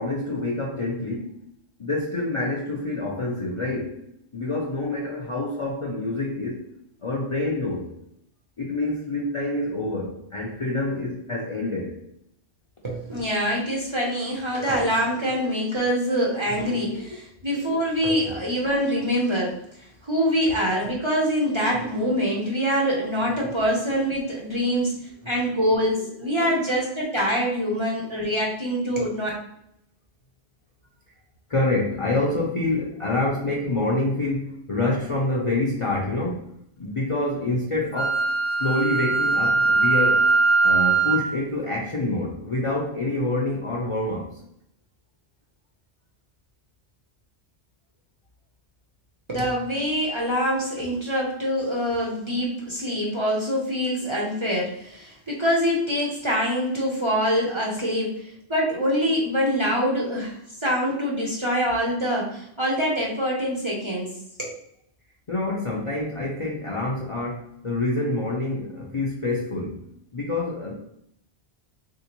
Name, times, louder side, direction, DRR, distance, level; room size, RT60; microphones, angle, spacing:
voice 1, 0.0-1.4 1.8-4.0 4.3-6.6 7.0-7.9 8.6-12.0 16.5-17.1 25.2-25.3 26.4-26.6 31.5-36.5 36.8-38.3 38.6-40.2 40.6-44.3 65.3-69.8 70.1-70.7, left 2 dB, 45° left, -4 dB, 0.4 m, -27 dB
voice 2, 12.8-19.6 20.0-25.0 25.3-29.3 49.3-64.1 64.4-64.5, equal, 35° right, -3 dB, 0.6 m, -25 dB
Wind instrument woodwind instrument, 37.9-41.3, right 4 dB, 65° left, 0.8 m, -20 dB
3.5 x 2.7 x 2.9 m, 0.73 s
omnidirectional pair, 1.1 m